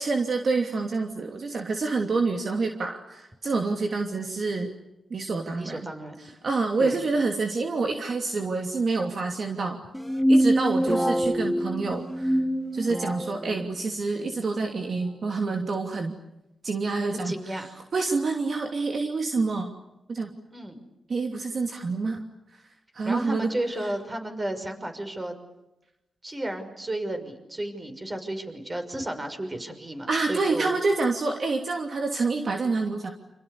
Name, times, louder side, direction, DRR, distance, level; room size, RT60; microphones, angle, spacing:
voice 1, 0.0-4.7 5.1-5.8 6.4-9.8 10.3-12.4 12.7-16.2 16.6-17.6 17.9-19.7 20.1-20.3 21.1-22.2 22.9-23.5 30.1-33.1, right 3 dB, 55° right, 3 dB, 2.8 m, -27 dB
voice 2, 5.6-6.2 6.8-7.0 10.9-11.3 17.1-17.7 20.5-20.8 23.0-25.3 26.2-30.8, right 1 dB, 25° right, 6 dB, 6.0 m, -33 dB
sound 1, 9.9-13.4, equal, ahead, 1.4 m, -24 dB
29.5 x 28.0 x 6.9 m, 0.94 s
cardioid pair, 95°, 0 cm